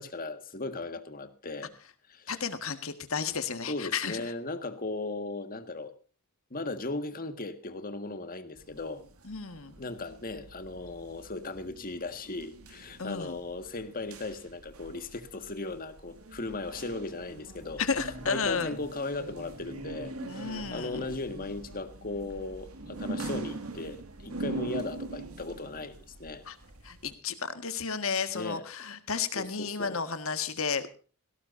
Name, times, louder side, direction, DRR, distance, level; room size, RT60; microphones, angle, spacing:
voice 1, 0.0-1.7 2.1-2.4 3.7-5.9 6.5-9.0 9.8-17.8 18.3-26.4 28.3-28.6 29.4-30.0, left 2 dB, 40° left, 9 dB, 1.7 m, -37 dB
voice 2, 2.3-4.2 9.2-9.7 13.0-13.4 17.8-18.8 20.2-21.1 26.5-26.6 26.8-30.9, left 5 dB, 65° left, 10 dB, 1.7 m, -32 dB
sound 1, 8.6-27.1, right 2 dB, 75° right, 2.3 m, -43 dB
18.0 x 17.5 x 2.6 m, 0.37 s
head